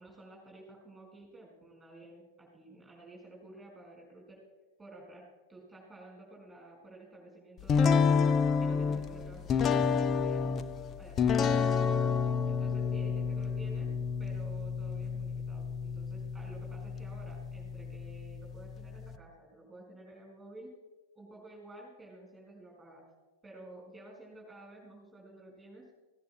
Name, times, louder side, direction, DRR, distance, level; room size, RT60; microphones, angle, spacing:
voice 1, 0.0-4.4 4.8-8.2 8.6-10.6 11.0-11.8 12.5-13.9 14.2-20.7 21.1-23.1 23.4-25.9, right 1 dB, 10° right, -1 dB, 4.7 m, -52 dB
sound 1, 7.7-19.2, left 6 dB, 25° left, 0.6 m, -30 dB
17.0 x 16.5 x 2.3 m, 1.2 s
figure-of-eight pair, 90°, 0 cm